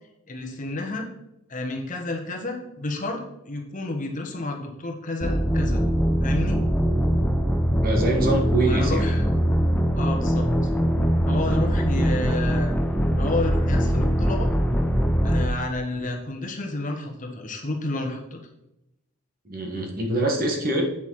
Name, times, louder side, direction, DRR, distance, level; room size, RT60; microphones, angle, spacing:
voice 1, 0.3-1.1 1.5-5.8 6.2-6.6 8.6-9.3 10.0-10.5 11.2-12.8 13.2-14.5 15.2-18.4, left 2 dB, 35° left, 2 dB, 1.3 m, -30 dB
sound 1, 5.2-15.5, equal, 5° left, 0.6 m, -22 dB
voice 2, 7.8-9.1 11.5-11.7 19.4-20.8, right 2 dB, 40° right, 1 dB, 1.6 m, -25 dB
8.6 x 6.7 x 4.8 m, 0.86 s
head